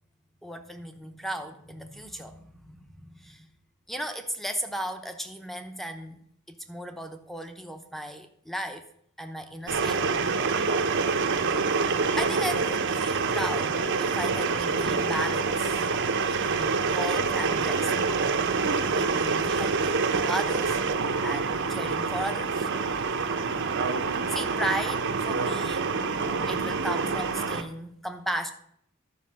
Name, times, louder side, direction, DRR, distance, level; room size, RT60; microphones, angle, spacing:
voice 1, 0.4-3.5 3.9-6.2 6.5-8.8 9.2-10.0 12.2-15.7 16.3-17.9 18.9-20.8 21.2-22.7 24.3-25.9 26.5-28.5, right 1 dB, ahead, 7 dB, 0.8 m, -35 dB
sound 1, 9.7-27.6, right 4 dB, 55° right, 0.7 m, -26 dB
12.0 x 4.9 x 6.2 m, 0.68 s
head